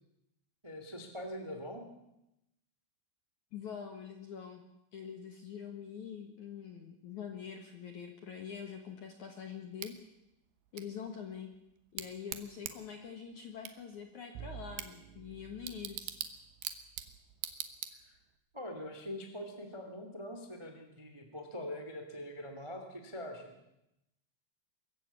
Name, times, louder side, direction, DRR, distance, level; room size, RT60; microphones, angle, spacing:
voice 1, 0.6-1.8 18.1-18.2 18.5-23.5, left 1 dB, 40° right, 5 dB, 0.4 m, -43 dB
voice 2, 3.5-4.6 4.9-9.9 10.7-11.5 11.9-16.2, left 7 dB, 65° left, 4 dB, 2.0 m, -45 dB
Bicycle / Tick, 9.8-18.4, right 11 dB, 70° right, 2.5 m, -45 dB
Bowed string instrument, 14.4-17.4, right 10 dB, 85° right, 3.5 m, -51 dB
23.5 x 14.5 x 8.4 m, 0.87 s
omnidirectional pair, 5.7 m